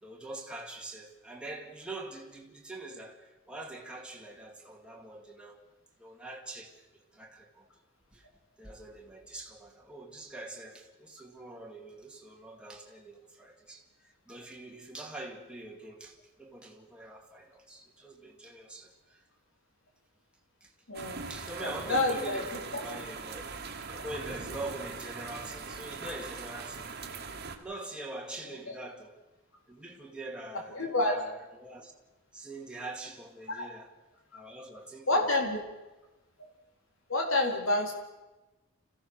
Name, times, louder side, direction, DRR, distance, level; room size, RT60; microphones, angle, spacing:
voice 1, 0.0-5.6 6.0-7.7 8.1-8.3 8.6-19.2 20.6-20.7 21.3-23.4 23.9-26.9 27.6-29.2 29.7-31.9 32.3-33.9 34.3-35.4, right 2 dB, 5° right, 2.3 m, -44 dB
voice 2, 20.9-21.3 21.6-22.4 30.7-31.2 33.5-33.7 35.1-35.6 37.1-37.9, left 2 dB, 70° left, 4.0 m, -28 dB
sound 1, 20.9-27.6, right 4 dB, 50° right, 1.9 m, -41 dB
27.0 x 15.5 x 6.4 m
head